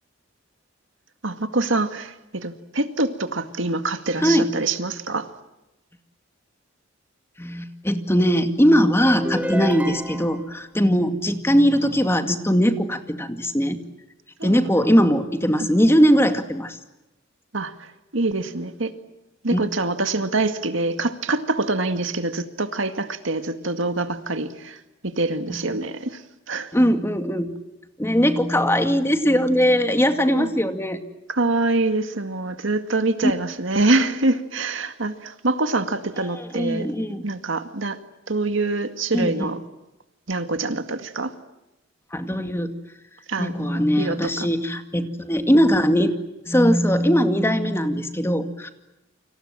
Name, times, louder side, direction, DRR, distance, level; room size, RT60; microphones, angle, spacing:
voice 1, 1.2-5.3 14.4-14.6 15.6-15.7 17.5-18.9 19.4-26.7 30.3-30.5 31.3-36.9 37.2-38.0 38.3-39.6 40.3-41.3 43.3-44.5, right 2 dB, 70° right, 8 dB, 2.1 m, -25 dB
voice 2, 4.2-4.5 7.4-13.8 14.4-16.8 19.5-19.6 25.5-25.6 26.7-27.5 28.0-31.0 33.2-33.3 36.5-37.3 39.1-39.5 42.1-42.7 43.4-46.2 46.5-48.7, equal, 15° left, 7 dB, 2.2 m, -20 dB
sound 1, 9.0-10.5, equal, 10° right, 1.8 m, -29 dB
30.0 x 26.0 x 7.6 m, 0.95 s
head